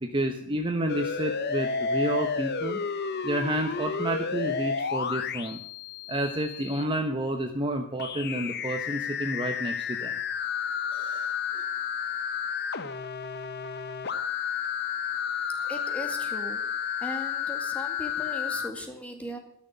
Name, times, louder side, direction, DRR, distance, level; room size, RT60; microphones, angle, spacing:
voice 1, 0.0-2.8 3.2-5.6 6.1-10.1 10.9-11.3, right 1 dB, 25° right, 4 dB, 1.0 m, -30 dB
sound 1, 0.9-6.8 8.0-18.7, left 6 dB, 50° left, 0.9 m, -31 dB
voice 2, 15.6-16.6 17.0-19.4, equal, 5° left, 4 dB, 2.0 m, -38 dB
13.0 x 6.7 x 9.8 m, 0.68 s
head